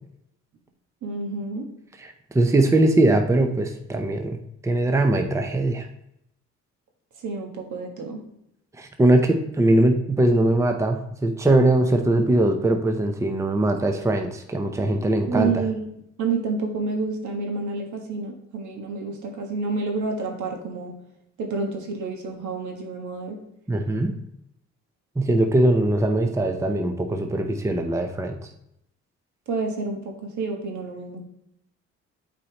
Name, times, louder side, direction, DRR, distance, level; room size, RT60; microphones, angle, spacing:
voice 1, 1.0-1.7 7.2-8.2 15.3-15.8 16.2-20.9 21.4-23.4 29.5-31.2, right 4 dB, 75° right, 2 dB, 1.5 m, -29 dB
voice 2, 2.0-4.4 4.6-5.9 8.8-15.6 23.7-24.1 25.2-28.4, right 1 dB, 10° right, 5 dB, 0.6 m, -21 dB
8.1 x 4.3 x 3.0 m, 0.77 s
cardioid pair, 90°, 30 cm